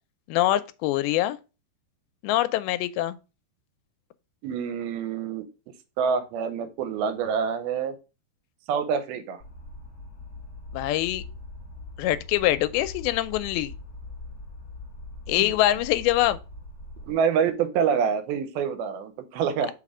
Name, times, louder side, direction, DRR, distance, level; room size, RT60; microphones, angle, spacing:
voice 1, 0.3-1.4 2.2-3.2 10.7-11.2 12.0-13.7 15.3-16.4, left 14 dB, 85° left, 2.4 m, -24 dB
voice 2, 4.4-5.5 6.0-8.0 8.7-9.4 17.1-19.7, right 7 dB, 85° right, 2.6 m, -26 dB
sound 1, 9.4-17.1, left 2 dB, 30° left, 2.9 m, -42 dB
5.4 x 4.2 x 4.8 m
omnidirectional pair, 4.3 m